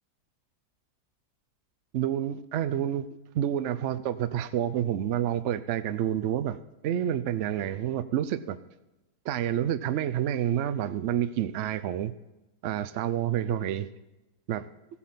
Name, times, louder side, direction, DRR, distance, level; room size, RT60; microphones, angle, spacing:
voice 1, 1.9-3.1 3.3-6.6 6.8-8.6 9.2-12.1 12.6-13.9 14.5-14.7, right 10 dB, 70° right, 12 dB, 0.7 m, -28 dB
16.0 x 8.4 x 5.7 m, 0.99 s
omnidirectional pair, 1.7 m